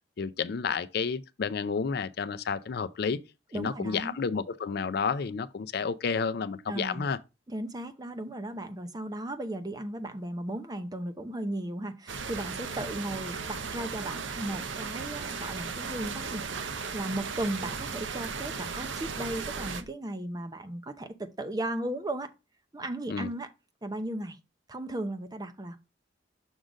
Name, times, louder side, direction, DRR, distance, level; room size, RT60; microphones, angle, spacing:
voice 1, 0.2-3.2 3.5-7.2 23.1-23.3, left 5 dB, 55° left, 0.4 m, -31 dB
voice 2, 3.5-4.2 6.7-7.0 7.5-16.4 16.9-22.3 22.7-23.5 23.8-24.4 24.7-25.8, right 1 dB, 20° right, 0.6 m, -36 dB
sound 1, 12.1-19.8, right 5 dB, 75° right, 0.7 m, -36 dB
6.2 x 3.8 x 5.0 m
head